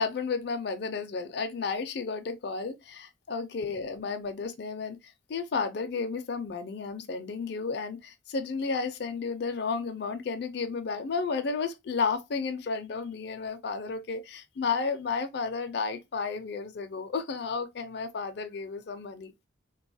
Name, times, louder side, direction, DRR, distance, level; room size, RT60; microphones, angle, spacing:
voice 1, 0.0-19.3, left 4 dB, 55° left, 0.4 m, -32 dB
3.4 x 2.3 x 2.6 m
head